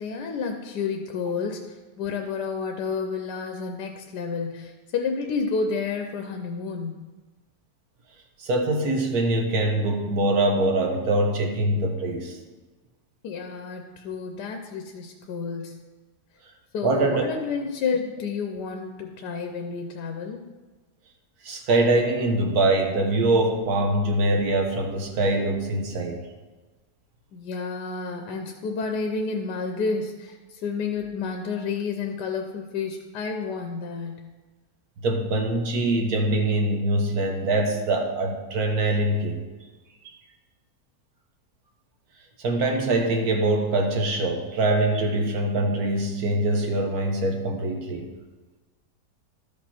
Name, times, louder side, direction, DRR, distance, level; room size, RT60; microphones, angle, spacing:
voice 1, 0.0-7.1 13.2-15.8 16.7-20.4 27.3-34.3, left 5 dB, 85° left, 4 dB, 1.3 m, -30 dB
voice 2, 8.4-12.4 16.8-17.2 21.4-26.2 35.0-39.4 40.0-40.1 42.4-48.1, right 2 dB, 65° right, 2 dB, 1.6 m, -23 dB
12.5 x 5.4 x 4.3 m, 1.3 s
omnidirectional pair, 1.7 m